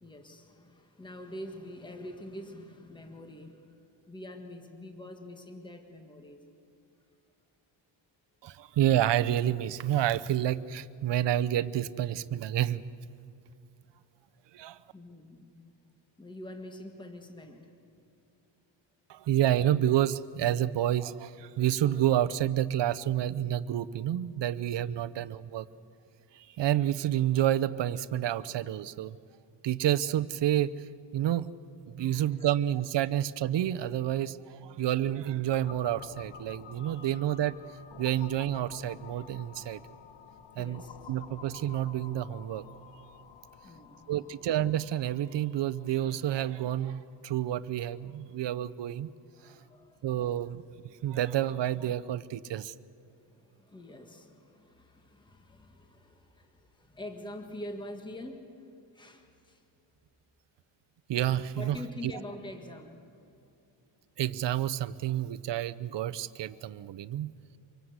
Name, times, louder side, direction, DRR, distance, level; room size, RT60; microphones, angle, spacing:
voice 1, 0.0-3.7 4.1-6.4 14.9-15.5 16.2-17.7 25.0-25.2 32.0-32.5 37.0-37.2 39.5-39.7 40.6-41.0 43.6-44.1 49.3-50.1 53.3-58.6 58.9-59.6 61.5-63.0 65.3-65.4, left 1 dB, 10° left, 4 dB, 1.6 m, -45 dB
voice 2, 8.4-12.8 14.5-14.8 19.1-25.7 26.3-29.2 29.6-30.8 31.1-31.5 31.9-37.5 38.0-39.8 40.6-40.8 41.1-42.6 44.1-49.1 50.0-50.6 51.0-52.7 61.1-61.8 62.0-62.1 64.2-67.3, right 12 dB, 60° right, 15 dB, 0.8 m, -29 dB
sound 1, 35.5-49.1, left 8 dB, 60° left, 1.2 m, -51 dB
25.5 x 23.0 x 8.1 m, 2.6 s
wide cardioid pair, 155°, 48 cm